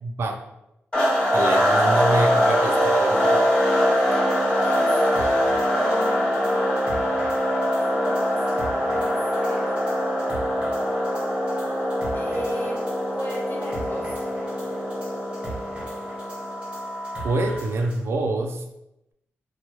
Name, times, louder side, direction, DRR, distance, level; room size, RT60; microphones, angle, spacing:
voice 1, 0.0-0.4 1.3-3.4 17.2-18.6, right 2 dB, 65° right, 5 dB, 0.4 m, -26 dB
sound 1, 0.9-17.6, equal, 20° left, 0.9 m, -23 dB
voice 2, 3.8-7.2 8.0-9.7 12.1-12.8 13.1-14.2, equal, 50° left, -5 dB, 1.0 m, -37 dB
sound 2, 4.3-18.0, right 2 dB, 20° right, 1.1 m, -42 dB
2.9 x 2.2 x 3.0 m, 0.87 s
wide cardioid pair, 120°, 5 cm